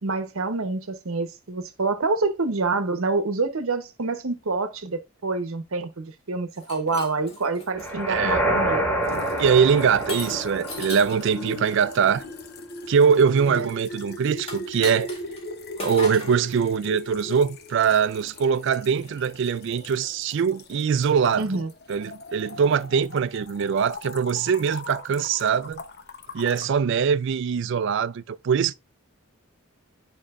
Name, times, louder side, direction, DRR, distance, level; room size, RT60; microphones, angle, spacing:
voice 1, 0.0-9.2 13.5-13.7 21.4-21.7, right 3 dB, 75° right, 0.9 m, -27 dB
Shatter, 6.5-7.9 8.6-8.9 10.1-11.2 14.4-15.4 15.8-16.4, left 2 dB, 30° left, 2.2 m, -36 dB
sound 1, 7.7-11.9, right 1 dB, 10° left, 2.1 m, -27 dB
voice 2, 8.1-8.4 9.4-12.2 12.9-15.1 15.8-21.5 21.9-25.8 26.3-28.7, right 6 dB, 60° right, 0.3 m, -22 dB
sound 2, 9.0-26.7, left 2 dB, 50° left, 0.8 m, -39 dB
8.8 x 5.1 x 2.4 m
head